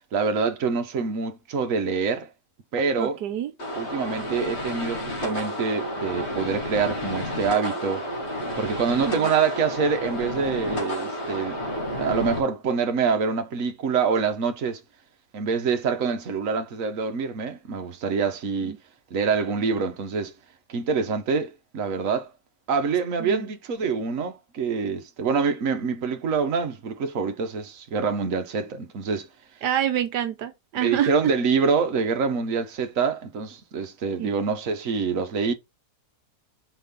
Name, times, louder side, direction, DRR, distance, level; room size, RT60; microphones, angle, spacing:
voice 1, 0.1-2.3 2.7-3.2 3.8-8.0 8.6-11.6 12.0-14.8 15.3-18.7 19.1-20.3 20.7-22.3 22.7-29.3 30.8-35.5, right 5 dB, 55° right, 1.4 m, -26 dB
voice 2, 3.0-3.5 18.6-18.8 23.2-23.5 29.6-31.1 34.2-34.3, right 10 dB, 85° right, 1.4 m, -27 dB
sound 1, 3.6-12.4, equal, 40° left, 2.5 m, -31 dB
5.7 x 4.0 x 5.3 m
omnidirectional pair, 1.7 m